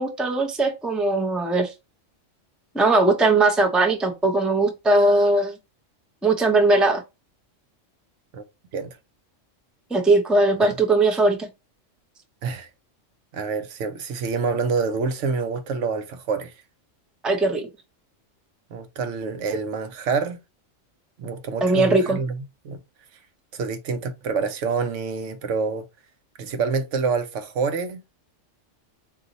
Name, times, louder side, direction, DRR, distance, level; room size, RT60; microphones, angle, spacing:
voice 1, 0.0-1.7 2.7-5.6 6.2-7.0 9.9-11.5 17.2-17.7 21.6-22.2, right 2 dB, ahead, 0.3 m, -19 dB
voice 2, 13.3-16.5 18.7-20.4 21.2-22.8 23.5-25.8 26.4-28.0, right 5 dB, 75° right, 1.0 m, -27 dB
4.0 x 2.7 x 3.9 m
omnidirectional pair, 1.3 m